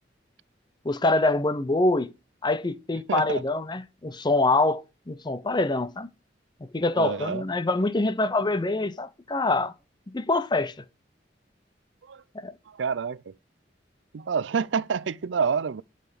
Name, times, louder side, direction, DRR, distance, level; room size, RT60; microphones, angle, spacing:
voice 1, 0.8-2.1 2.4-4.8 5.1-6.1 6.7-9.7 10.1-10.7 12.4-12.5, left 2 dB, 25° left, 0.7 m, -25 dB
voice 2, 3.1-3.4 6.9-7.4 12.1-12.2 12.7-13.3 14.1-15.8, right 6 dB, 85° right, 0.5 m, -28 dB
10.0 x 6.6 x 5.2 m
head